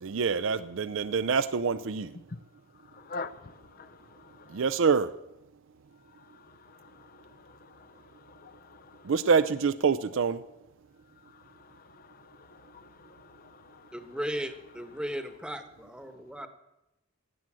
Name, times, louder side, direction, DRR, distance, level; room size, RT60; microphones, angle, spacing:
voice 1, 0.0-2.1 4.5-5.1 9.1-10.4, right 5 dB, 65° right, 0.5 m, -26 dB
voice 2, 2.9-4.6 6.3-9.1 11.6-13.9, left 4 dB, 45° left, 0.5 m, -47 dB
voice 3, 13.9-16.5, equal, 5° right, 1.1 m, -36 dB
17.0 x 7.7 x 7.5 m
head